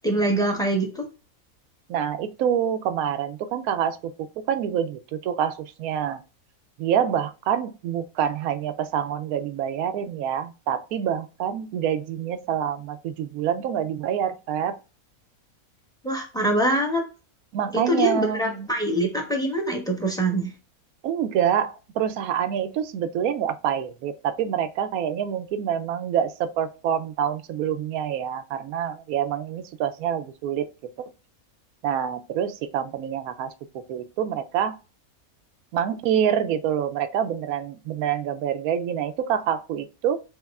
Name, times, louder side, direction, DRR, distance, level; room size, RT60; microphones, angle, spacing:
voice 1, 0.0-1.1 16.0-17.0 17.9-20.5, right 1 dB, 5° left, 0.9 m, -24 dB
voice 2, 1.9-6.2 6.8-14.8 17.5-18.7 21.0-30.7 31.8-34.8 35.7-40.2, right 9 dB, 80° right, 1.0 m, -26 dB
6.3 x 2.9 x 2.4 m
omnidirectional pair, 1.5 m